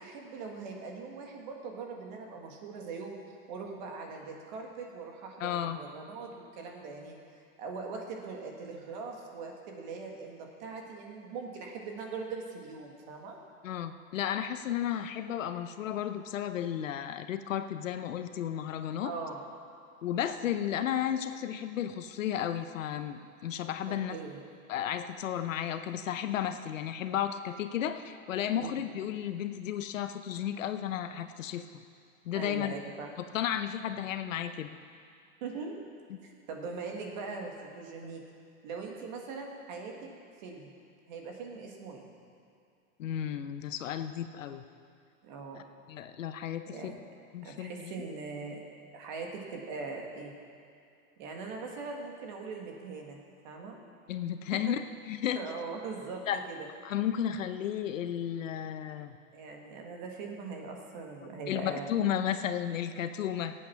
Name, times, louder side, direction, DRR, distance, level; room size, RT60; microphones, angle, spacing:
voice 1, 0.0-3.2 3.5-7.2 7.6-13.4 19.0-19.4 24.1-24.4 28.5-28.8 32.3-33.1 35.4-35.8 36.2-38.2 38.6-40.1 40.4-40.7 41.1-42.1 45.2-45.6 46.7-46.9 47.4-48.6 48.9-50.3 51.2-53.2 53.4-53.8 54.7-54.8 55.3-56.7 59.3-61.9, right 4 dB, 35° right, 1 dB, 1.7 m, -41 dB
voice 2, 5.4-5.8 13.6-19.1 20.0-24.2 24.7-31.6 32.3-32.7 33.3-34.7 43.0-44.6 45.5-45.6 45.9-46.9 47.3-47.9 54.1-54.8 55.1-55.4 56.3-56.4 56.8-59.2 61.2-63.5, left 10 dB, 65° left, 9 dB, 0.9 m, -33 dB
18.5 x 8.8 x 5.8 m, 2.4 s
supercardioid pair, 175°, 42 cm